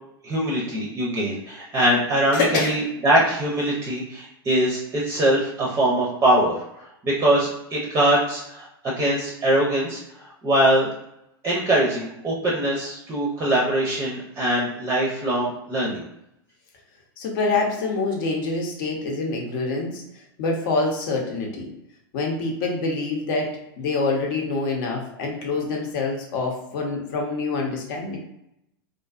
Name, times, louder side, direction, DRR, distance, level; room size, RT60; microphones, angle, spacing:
voice 1, 0.2-6.6 7.0-10.0 10.4-10.9 11.4-16.0, right 1 dB, 20° right, -3 dB, 0.5 m, -22 dB
voice 2, 2.3-2.7 17.2-20.0 20.4-21.7 22.1-28.2, left 3 dB, 60° left, 0 dB, 0.8 m, -26 dB
2.5 x 2.3 x 2.4 m, 0.79 s
hypercardioid pair, 115°, 13 cm